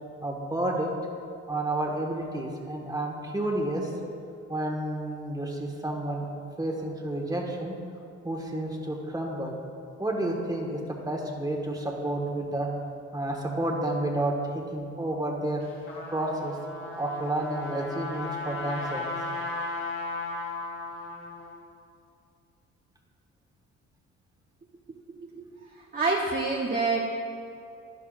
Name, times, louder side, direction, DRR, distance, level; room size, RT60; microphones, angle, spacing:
voice 1, 0.2-0.9 1.5-3.9 4.5-6.3 6.6-7.7 8.2-9.6 10.0-12.7 13.1-15.6 16.1-16.6 17.0-19.1, right 1 dB, 10° right, 0 dB, 1.5 m, -30 dB
Trumpet, 15.6-21.6, left 2 dB, 45° left, 1.9 m, -35 dB
voice 2, 25.1-25.4 25.9-27.0, right 3 dB, 30° right, -2 dB, 0.9 m, -27 dB
11.5 x 11.0 x 2.5 m, 2.4 s
cardioid pair, 90°, 30 cm